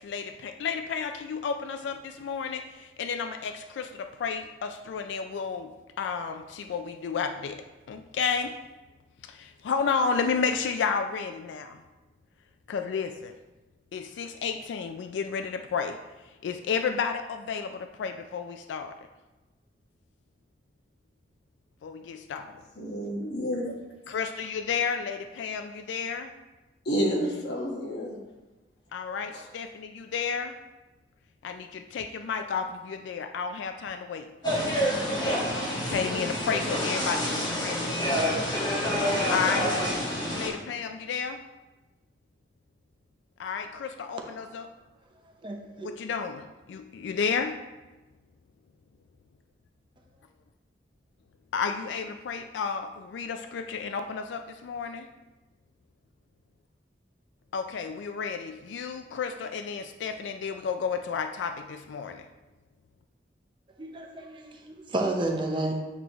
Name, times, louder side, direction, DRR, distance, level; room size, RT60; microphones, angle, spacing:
voice 1, 0.0-8.6 9.2-11.8 12.7-13.4 13.9-19.0 21.8-22.6 24.1-26.3 28.9-30.6 31.4-34.3 35.5-38.5 39.3-39.8 40.3-41.4 43.4-44.7 45.8-47.6 51.5-55.1 57.5-62.3, left 6 dB, 85° left, 7 dB, 0.3 m, -32 dB
voice 2, 22.8-23.7 26.8-28.2 29.3-29.4, equal, 65° left, -2 dB, 1.4 m, -29 dB
sound 1, 34.4-40.5, equal, 25° left, 1.5 m, -27 dB
voice 3, 45.4-45.9 63.8-65.7, right 2 dB, 25° right, 2 dB, 0.6 m, -31 dB
8.1 x 4.7 x 2.9 m, 1.1 s
head